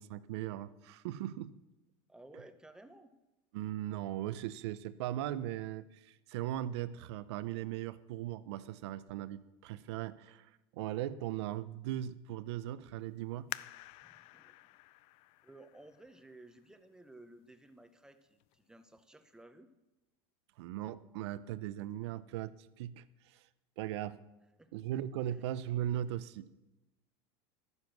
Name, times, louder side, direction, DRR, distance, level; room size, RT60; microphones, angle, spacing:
voice 1, 0.0-1.5 3.5-13.5 20.6-23.4 23.8-24.2 24.7-26.5, right 12 dB, 80° right, 15 dB, 0.7 m, -38 dB
voice 2, 2.1-3.1 14.0-14.7 15.4-19.7 24.6-24.7 25.3-25.4, right 2 dB, 5° right, 9 dB, 0.7 m, -56 dB
sound 1, 13.5-16.9 17.5-17.6 18.2-18.6 19.0-19.1, left 17 dB, 45° left, 0.4 m, -49 dB
12.5 x 9.7 x 6.0 m, 1.0 s
supercardioid pair, 155°, 14 cm